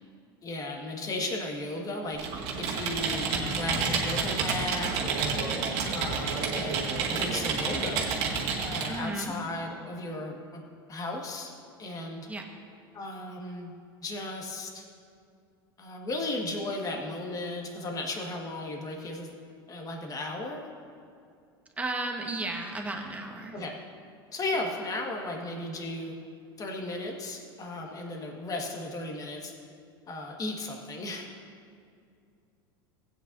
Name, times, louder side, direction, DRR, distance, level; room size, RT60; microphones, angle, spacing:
voice 1, 0.4-5.3 5.9-8.0 8.6-10.6 10.9-11.5 11.8-12.3 12.9-13.7 14.0-14.8 15.8-19.4 19.7-20.6 23.5-23.7 24.3-26.2 26.6-29.5 30.1-31.3, left 2 dB, 30° left, 1 dB, 1.7 m, -35 dB
Computer keyboard, 2.1-9.0, right 5 dB, 60° right, 1.9 m, -29 dB
voice 2, 8.8-9.3 12.3-12.5 21.8-23.6, right 2 dB, 10° right, 2 dB, 1.4 m, -34 dB
16.0 x 9.2 x 2.7 m, 2.4 s
hypercardioid pair, 95°, 13 cm